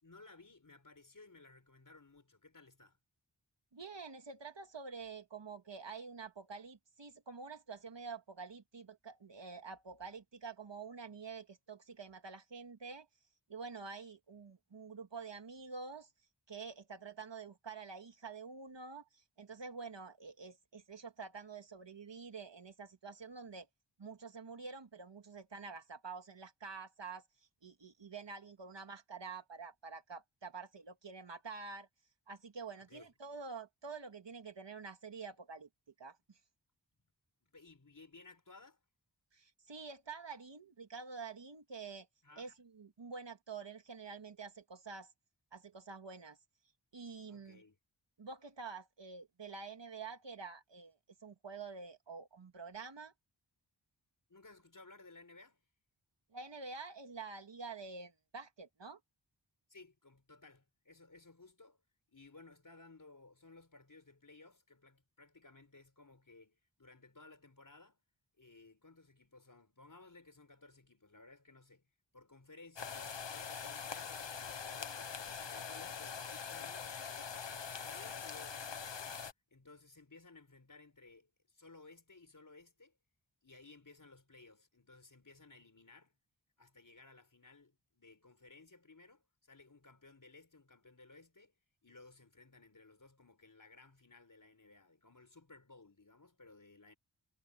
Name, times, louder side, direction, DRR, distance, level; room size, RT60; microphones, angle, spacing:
voice 1, 0.0-3.0 32.8-33.1 37.4-38.8 42.2-42.5 47.3-47.8 54.3-55.6 59.7-61.8 62.1-68.0 68.4-75.2 75.5-76.9 77.7-83.0 83.4-86.2 86.6-91.5 91.8-97.0, left 3 dB, 45° left, 5.1 m, -59 dB
voice 2, 3.7-13.1 13.5-16.1 16.5-23.7 24.0-27.2 27.6-31.9 32.3-35.7 36.0-36.4 39.3-42.1 42.4-45.1 45.5-46.4 46.9-47.6 48.2-53.1 56.3-59.0, right 4 dB, 75° right, 2.3 m, -48 dB
sound 1, 72.8-79.3, left 6 dB, 75° left, 1.2 m, -43 dB
wide cardioid pair, 70°, 44 cm